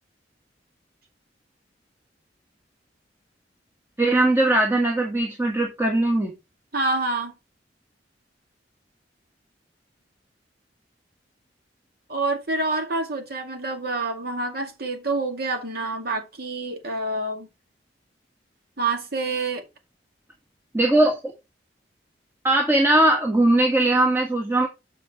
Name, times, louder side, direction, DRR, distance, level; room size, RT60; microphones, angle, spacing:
voice 1, 4.0-6.3 20.7-21.2 22.4-24.7, right 1 dB, 15° right, 1.4 m, -20 dB
voice 2, 6.7-7.3 12.1-17.5 18.8-19.6, right 3 dB, 60° right, 2.2 m, -27 dB
7.4 x 5.8 x 4.3 m
head